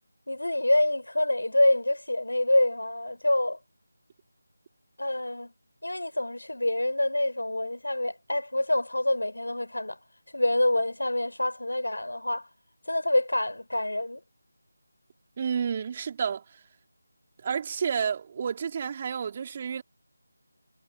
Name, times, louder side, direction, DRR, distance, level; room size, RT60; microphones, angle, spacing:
voice 1, 0.3-3.6 5.0-5.5 5.8-10.0 10.3-12.5 12.9-14.2, left 1 dB, 80° left, 6.3 m, -26 dB
voice 2, 15.4-16.6 17.4-19.8, right 7 dB, 30° right, 2.7 m, -30 dB
figure-of-eight pair, 165°, 0 cm